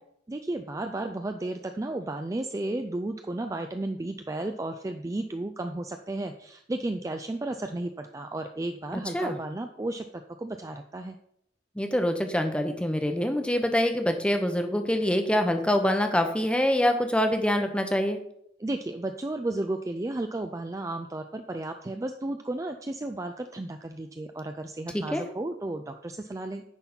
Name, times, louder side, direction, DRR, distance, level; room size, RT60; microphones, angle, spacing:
voice 1, 0.3-11.2 18.6-26.6, right 2 dB, 15° right, 6 dB, 0.4 m, -33 dB
voice 2, 11.8-18.2 24.9-25.2, equal, 5° left, 6 dB, 0.8 m, -25 dB
9.9 x 4.0 x 5.8 m, 0.73 s
head